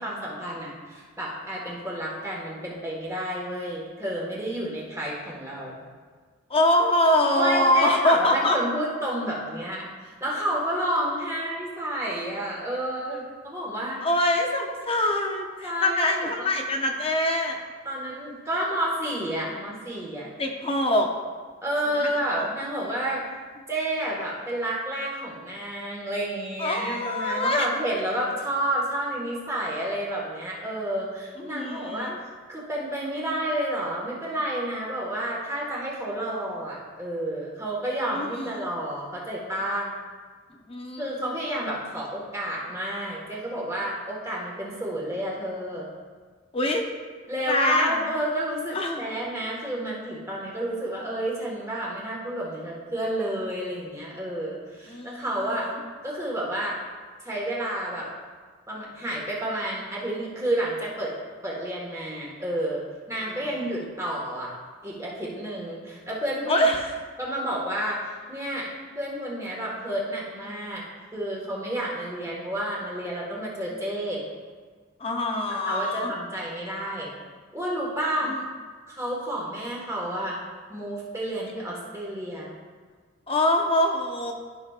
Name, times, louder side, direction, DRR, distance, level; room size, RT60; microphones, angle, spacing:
voice 1, 0.0-5.7 7.2-14.0 15.6-16.6 17.8-20.3 21.6-23.2 23.7-39.9 41.0-45.9 47.3-55.7 56.0-56.8 57.2-58.1 58.7-61.1 61.4-64.5 64.8-66.7 67.2-68.7 68.9-70.8 71.1-74.2 75.5-77.1 77.5-78.3 78.9-80.4 80.7-82.5, right 1 dB, 15° right, -4 dB, 1.5 m, -30 dB
voice 2, 6.5-8.6 14.0-17.6 20.4-21.1 22.4-22.5 26.6-27.7 31.4-32.2 38.1-38.7 40.7-41.1 46.5-46.8 47.5-47.9 48.7-49.1 54.9-55.3 55.5-55.7 63.2-63.3 66.5-66.9 75.0-76.1 78.3-78.4 83.3-84.3, left 1 dB, 25° left, 2 dB, 0.7 m, -24 dB
13.0 x 5.8 x 2.5 m, 1.5 s
head